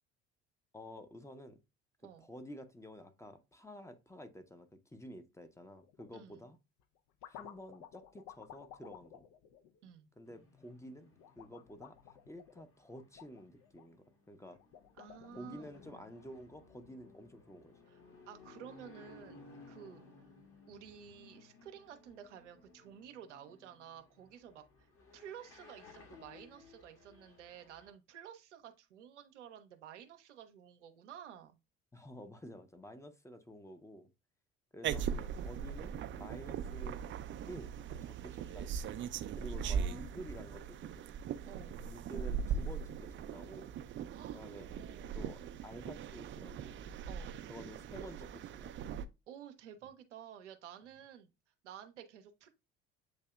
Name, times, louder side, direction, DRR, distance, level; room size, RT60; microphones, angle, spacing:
voice 1, 0.7-1.6 2.2-6.6 7.3-9.3 10.2-11.1 11.4-14.6 15.4-17.7 31.9-34.1 34.7-37.0 37.5-38.7 39.4-41.0 41.8-43.7 44.3-44.7 45.1-46.7 47.5-48.8, equal, 10° left, 0.7 m, -51 dB
sound 1, 5.8-6.1 6.8-10.4 11.2-13.9 14.5-15.8, left 9 dB, 60° left, 0.6 m, -55 dB
voice 2, 6.1-6.5 9.8-10.1 15.0-15.8 17.9-19.4 19.7-20.0 20.7-24.6 25.1-31.6 39.6-40.4 41.5-41.8 44.1-44.4 44.7-45.2 47.1-47.4 49.3-51.3 51.6-52.5, right 9 dB, 85° right, 0.6 m, -52 dB
sound 2, 10.3-27.9, left 4 dB, 40° left, 1.3 m, -59 dB
sound 3, 34.8-49.0, right 7 dB, 35° right, 0.4 m, -40 dB
8.0 x 2.7 x 2.2 m
hypercardioid pair, 60°, 35 cm